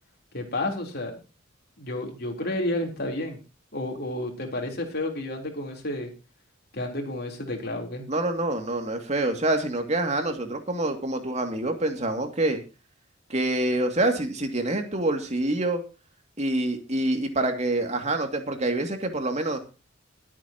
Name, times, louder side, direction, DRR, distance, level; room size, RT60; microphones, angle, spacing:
voice 1, 0.3-1.2 1.8-3.4 3.7-6.1 6.7-8.1, left 1 dB, 55° left, 1 dB, 3.7 m, -31 dB
voice 2, 8.1-12.6 13.3-15.8 16.4-19.6, right 2 dB, 35° right, 5 dB, 2.5 m, -26 dB
23.0 x 8.7 x 3.0 m, 0.31 s
head